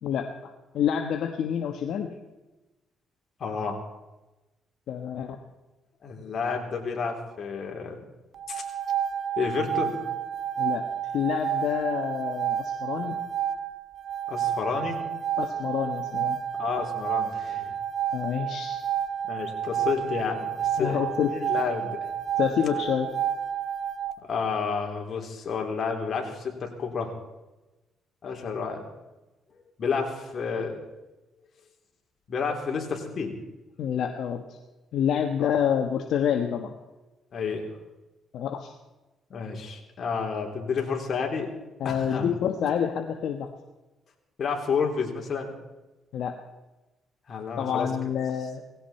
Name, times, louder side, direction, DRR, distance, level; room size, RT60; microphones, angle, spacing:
voice 1, 0.0-2.1 4.9-5.4 10.6-10.9 11.1-13.2 15.4-16.4 18.1-18.8 20.8-21.3 22.4-23.1 33.8-34.6 34.9-36.7 38.3-38.7 41.8-43.5 46.1-46.4 47.6-48.6, left 8 dB, 75° left, 5 dB, 1.3 m, -28 dB
voice 2, 3.4-3.8 6.0-8.0 8.5-8.6 9.4-9.9 14.3-15.0 16.6-17.7 19.2-22.1 24.2-27.1 28.2-28.8 29.8-30.8 32.3-33.3 35.4-35.5 37.3-37.7 39.3-41.5 41.8-42.3 44.4-45.5 47.3-47.9, left 5 dB, 50° left, 1 dB, 3.7 m, -30 dB
sound 1, 8.3-24.2, right 9 dB, 65° right, 0.7 m, -30 dB
18.5 x 16.5 x 4.4 m, 1.1 s
cardioid pair, 90°, 0 cm